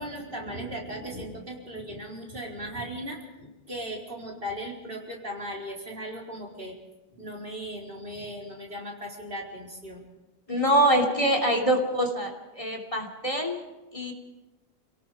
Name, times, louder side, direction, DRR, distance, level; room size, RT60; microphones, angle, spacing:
voice 1, 0.0-6.7 7.1-10.0, equal, 65° right, -2 dB, 4.5 m, -37 dB
voice 2, 10.5-13.6 13.9-14.1, right 1 dB, 30° left, 2 dB, 3.1 m, -24 dB
29.5 x 18.0 x 5.0 m, 1.1 s
omnidirectional pair, 1.1 m